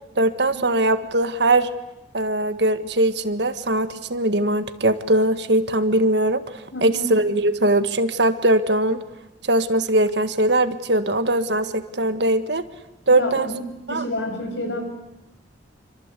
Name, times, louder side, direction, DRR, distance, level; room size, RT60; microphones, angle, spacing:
voice 1, 0.2-1.7 2.1-6.4 6.8-9.0 9.4-12.6 13.1-13.5 13.9-14.0, right 1 dB, 65° right, 10 dB, 1.7 m, -20 dB
voice 2, 6.7-7.1 13.1-13.6 13.9-14.8, left 1 dB, 70° left, 4 dB, 7.4 m, -29 dB
27.5 x 25.0 x 8.4 m, 0.95 s
head